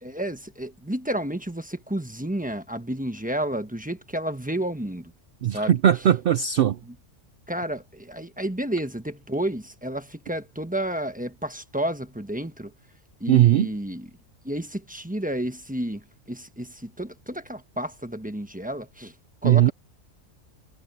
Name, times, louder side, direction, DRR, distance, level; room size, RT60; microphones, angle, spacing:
voice 1, 0.0-5.1 5.5-5.8 7.5-12.7 13.2-14.1 14.4-19.1 19.4-19.7, right 1 dB, 5° right, 1.1 m, -31 dB
voice 2, 5.4-6.8 13.3-13.7 19.4-19.7, right 11 dB, 60° right, 0.6 m, -19 dB
omnidirectional pair, 1.4 m